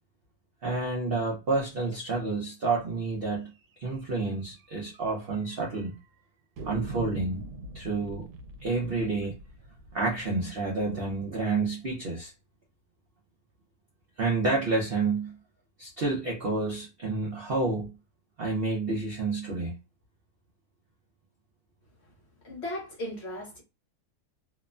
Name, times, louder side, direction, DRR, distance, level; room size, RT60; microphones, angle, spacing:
voice 1, 0.6-3.5 3.8-6.0 6.7-7.4 7.7-8.3 8.6-9.3 9.9-12.3 14.2-15.3 15.8-17.9 18.4-19.7, right 3 dB, 55° right, 0.6 m, -29 dB
sound 1, 3.7-3.9 4.2-4.3 4.6-4.7 5.3-5.9 6.6-11.4, right 2 dB, 85° right, 1.2 m, -43 dB
voice 2, 22.4-23.6, left 1 dB, 50° left, 1.1 m, -37 dB
2.9 x 2.2 x 2.4 m
omnidirectional pair, 1.7 m